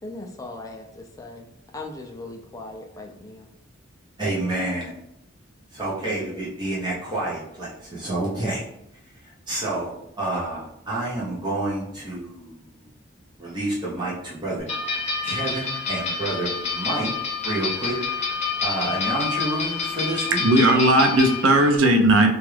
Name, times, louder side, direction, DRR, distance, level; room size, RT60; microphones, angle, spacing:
voice 1, 0.0-3.5, left 2 dB, 15° left, 2 dB, 0.3 m, -39 dB
voice 2, 4.2-4.9 5.7-8.6 9.5-9.9 10.2-12.6 13.4-14.6 15.2-17.1 17.4-17.9 18.6-20.4, right 2 dB, 20° right, -7 dB, 0.7 m, -28 dB
sound 1, 14.7-21.8, left 5 dB, 35° left, 0.8 m, -28 dB
voice 3, 20.3-22.4, right 1 dB, 75° right, 4 dB, 0.5 m, -17 dB
3.0 x 2.3 x 3.2 m, 0.79 s
head